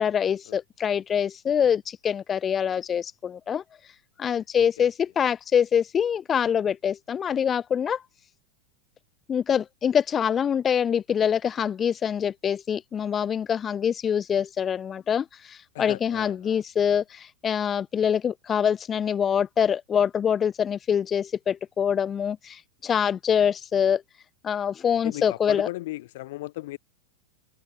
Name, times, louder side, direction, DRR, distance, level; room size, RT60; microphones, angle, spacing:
voice 1, 0.0-3.9 4.2-8.0 9.3-24.0 24.4-25.7, left 8 dB, 25° left, 0.4 m, -25 dB
voice 2, 4.6-4.9 15.7-16.6 25.0-26.8, left 18 dB, 65° left, 2.1 m, -36 dB
supercardioid pair, 135°, 0 cm